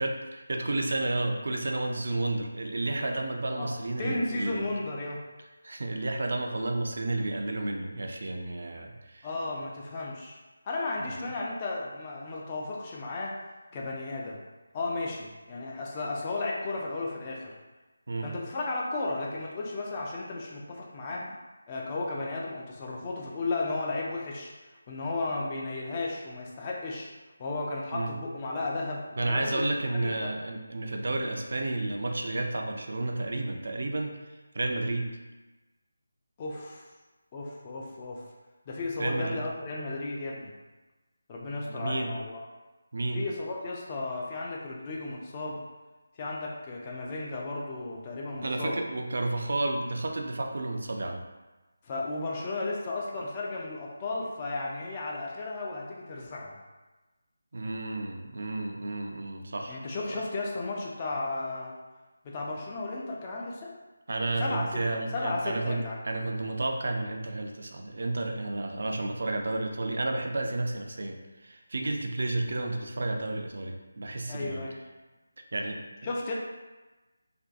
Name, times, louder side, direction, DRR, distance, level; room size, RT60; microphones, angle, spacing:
voice 1, 0.0-4.7 5.6-9.3 18.1-18.3 27.9-28.1 29.2-35.1 39.0-39.4 41.5-42.1 42.9-43.2 48.4-51.2 57.5-59.8 60.1-60.2 64.1-74.6 75.4-75.8, right 2 dB, 60° right, 3 dB, 0.3 m, -31 dB
voice 2, 3.6-5.2 9.2-10.4 10.6-13.4 13.7-14.4 14.7-17.6 18.2-21.4 21.7-24.5 24.9-27.1 27.4-29.7 30.0-30.3 36.4-36.9 37.3-38.2 38.7-40.5 41.3-42.4 43.1-45.6 46.2-48.8 51.8-56.6 59.7-61.8 62.2-63.8 64.4-64.7 64.9-66.0 74.3-74.8 76.0-76.3, left 2 dB, 25° left, -3 dB, 0.3 m, -34 dB
2.5 x 2.2 x 2.4 m, 1.2 s
figure-of-eight pair, 160°, 0 cm